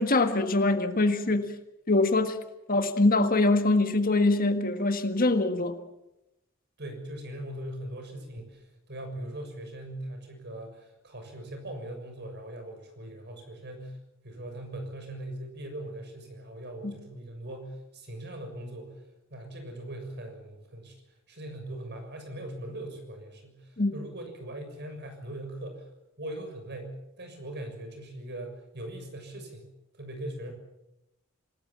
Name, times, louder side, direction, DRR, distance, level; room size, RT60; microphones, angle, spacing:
voice 1, 0.0-1.4 1.9-2.4 2.7-5.7 23.8-23.9, left 2 dB, 40° left, 8 dB, 1.6 m, -23 dB
voice 2, 6.8-14.0 14.2-19.0 19.3-21.0 21.3-25.8 26.2-30.5, right 1 dB, 50° right, 5 dB, 6.8 m, -40 dB
27.0 x 19.0 x 7.4 m, 0.89 s
head